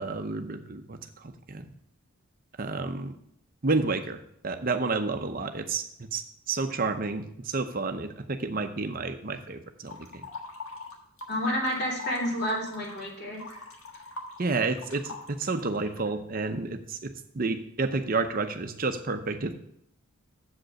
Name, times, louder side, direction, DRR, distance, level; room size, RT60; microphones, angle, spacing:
voice 1, 0.0-1.7 2.6-3.1 3.6-6.2 6.5-10.3 14.4-19.5, right 3 dB, 40° right, 7 dB, 0.7 m, -30 dB
sound 1, 9.9-11.4 11.6-16.1, left 3 dB, 75° left, 1.5 m, -42 dB
voice 2, 11.3-13.6, equal, 50° left, -5 dB, 2.7 m, -30 dB
7.6 x 5.1 x 6.3 m, 0.73 s
head